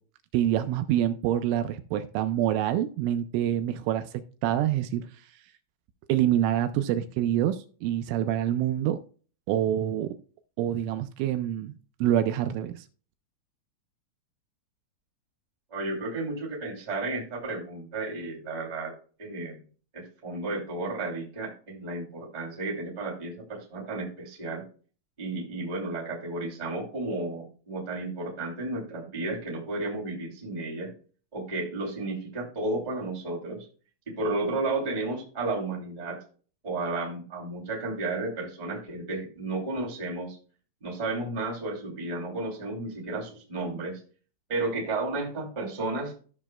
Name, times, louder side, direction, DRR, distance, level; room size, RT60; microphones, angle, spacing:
voice 1, 0.3-5.1 6.1-9.0 9.5-10.1 10.6-11.7 12.0-12.9, right 11 dB, 85° right, 2.9 m, -26 dB
voice 2, 15.7-18.9 19.2-19.6 19.9-24.6 25.2-30.9 31.3-33.6 34.2-36.2 36.6-40.4 40.8-44.0 44.5-46.1, right 2 dB, 20° right, 1.1 m, -33 dB
15.0 x 6.1 x 2.2 m
omnidirectional pair, 5.7 m